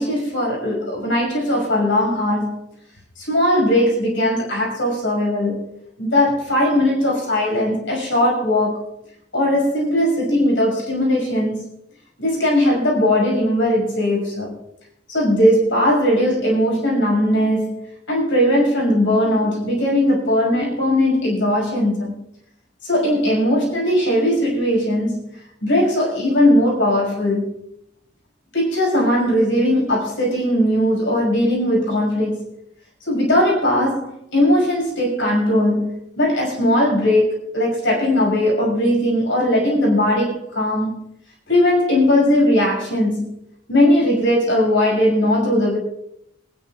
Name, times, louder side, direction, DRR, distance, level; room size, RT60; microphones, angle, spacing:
voice 1, 0.0-2.7 3.2-5.7 6.0-8.8 9.3-11.6 12.2-14.5 15.1-17.8 18.1-22.1 22.8-25.3 25.6-27.5 28.5-32.4 33.1-41.0 41.5-43.3 43.7-45.8, left 1 dB, 70° left, 5.9 m, -19 dB
28.0 x 10.5 x 2.4 m
head